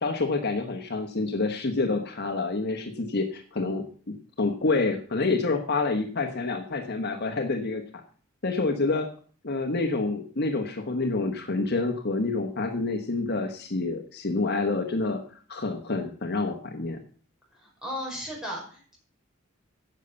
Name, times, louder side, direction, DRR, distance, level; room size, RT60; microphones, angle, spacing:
voice 1, 0.0-8.0 8.4-9.1 9.4-15.2 15.5-17.0, left 3 dB, 50° left, 5 dB, 1.2 m, -28 dB
voice 2, 17.5-19.0, equal, 5° right, -3 dB, 5.4 m, -36 dB
10.5 x 6.8 x 7.0 m, 0.44 s
head